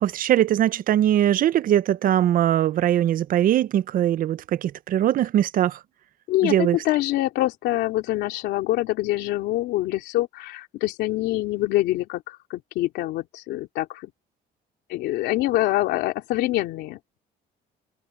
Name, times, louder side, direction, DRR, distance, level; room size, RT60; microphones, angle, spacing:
voice 1, 0.0-5.8 6.4-6.8, right 11 dB, 55° right, 0.6 m, -21 dB
voice 2, 6.3-14.1 14.9-17.0, left 16 dB, 85° left, 3.0 m, -25 dB
cardioid pair, 110°, 17 cm